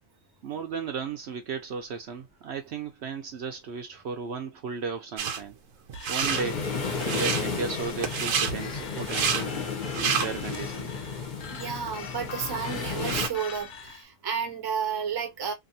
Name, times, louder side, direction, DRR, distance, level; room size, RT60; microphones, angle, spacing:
voice 1, 0.4-5.6 6.1-6.6 7.0-9.5 10.0-10.9, right 5 dB, 65° right, 0.8 m, -35 dB
sound 1, 5.2-5.4 5.9-6.4 7.0-7.4 8.0-8.5 9.0-9.4 9.8-10.6 11.1-11.2 11.9-12.0 12.2-13.4, right 7 dB, 90° right, 1.1 m, -29 dB
sound 2, 5.9-14.1, left 6 dB, 55° left, 0.5 m, -43 dB
sound 3, 6.2-13.3, left 5 dB, 40° left, 0.9 m, -33 dB
voice 2, 11.5-15.5, right 7 dB, 25° right, 0.6 m, -32 dB
2.7 x 2.6 x 2.6 m
omnidirectional pair, 1.3 m